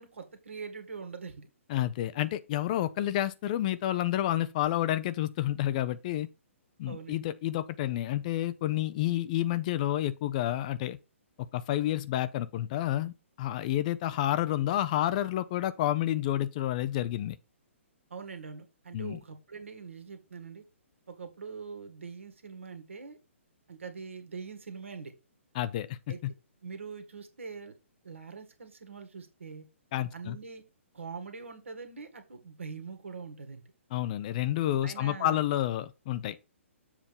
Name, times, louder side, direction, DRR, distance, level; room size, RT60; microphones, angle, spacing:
voice 1, 0.0-1.5 6.8-7.2 18.1-20.6 21.1-23.2 23.7-25.1 26.1-26.3 26.6-27.7 28.0-29.7 30.1-30.6 30.9-33.7 34.8-35.4, right 5 dB, 65° right, 1.8 m, -43 dB
voice 2, 1.7-6.3 6.8-11.0 11.5-17.4 18.9-19.2 25.5-26.3 29.9-30.4 33.9-36.4, left 13 dB, 35° left, 0.5 m, -30 dB
7.3 x 3.5 x 5.5 m
figure-of-eight pair, 125°, 7 cm